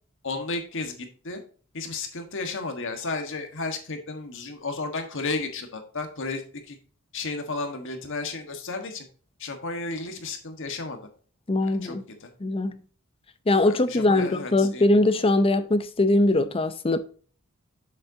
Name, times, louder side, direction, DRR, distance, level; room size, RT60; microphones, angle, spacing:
voice 1, 0.2-1.4 1.7-6.8 7.1-9.0 9.4-11.1 11.6-12.3 13.6-14.9, left 3 dB, 60° left, 1.5 m, -33 dB
voice 2, 11.5-12.0 12.4-12.8 13.5-17.0, left 2 dB, 25° left, 0.6 m, -21 dB
7.2 x 7.1 x 2.8 m
head